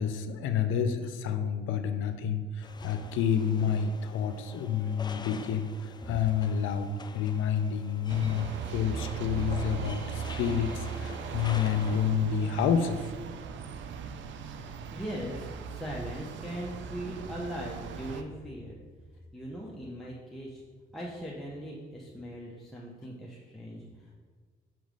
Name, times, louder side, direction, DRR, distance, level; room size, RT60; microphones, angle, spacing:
voice 1, 0.0-13.1, left 7 dB, 90° left, 9 dB, 0.5 m, -29 dB
sound 1, 2.6-12.0, left 4 dB, 20° left, 0.3 m, -46 dB
sound 2, 8.1-18.2, right 6 dB, 70° right, 0.5 m, -39 dB
voice 2, 14.9-18.8 19.3-20.6 20.9-24.2, equal, ahead, -5 dB, 0.8 m, -39 dB
6.0 x 3.1 x 5.1 m, 1.5 s
cardioid pair, 90°, 20 cm